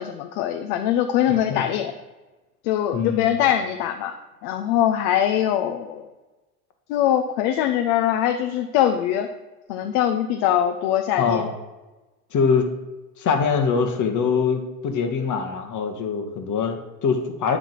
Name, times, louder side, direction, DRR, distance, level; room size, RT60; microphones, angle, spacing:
voice 1, 0.0-1.9 2.6-4.1 4.4-6.0 6.9-9.3 9.7-11.5, left 10 dB, 60° left, 6 dB, 0.9 m, -22 dB
voice 2, 1.3-1.6 2.9-3.3 10.4-10.7 11.2-11.5 12.3-12.6 13.2-17.6, left 5 dB, 40° left, 5 dB, 1.7 m, -23 dB
11.5 x 4.0 x 7.6 m, 1.1 s
hypercardioid pair, 90°, 45 cm